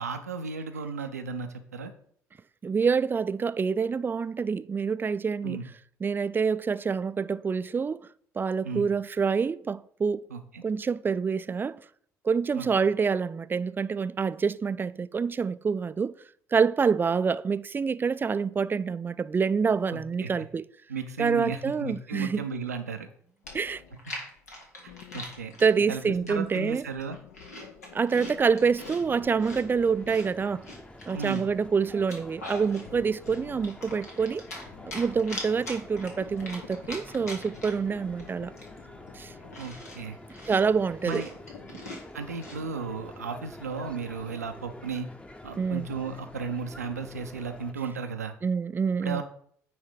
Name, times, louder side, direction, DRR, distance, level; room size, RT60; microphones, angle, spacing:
voice 1, 0.0-1.9 5.4-5.7 8.6-8.9 10.3-10.6 12.5-12.7 19.9-20.5 20.9-23.1 24.1-24.2 25.1-25.5 25.9-27.2 31.1-31.5 39.6-40.2 41.1-41.3 42.1-45.1 45.4-48.3 49.0-49.2, right 5 dB, 85° right, 0.6 m, -35 dB
voice 2, 2.6-5.6 6.0-8.0 8.4-10.2 10.6-11.8 12.2-16.1 16.5-20.6 21.2-22.4 23.5-23.8 25.6-26.8 27.9-30.6 31.1-34.4 34.9-38.5 39.1-39.3 40.5-41.2 45.6-45.9 48.4-49.2, right 5 dB, 25° right, 0.4 m, -26 dB
Chewing mastication, 23.1-23.2 23.5-25.7 26.3-26.6 27.0-29.0 29.4-31.5 31.9-32.9 33.2-34.6 34.9-37.9 38.2-38.3 38.6-42.6, left 1 dB, 85° left, 1.4 m, -42 dB
sound 1, 23.4-30.3 30.6-41.8, left 8 dB, 65° left, 0.7 m, -51 dB
sound 2, 28.9-47.7, left 1 dB, 15° left, 0.8 m, -47 dB
9.4 x 3.5 x 5.1 m
figure-of-eight pair, 55°, 8 cm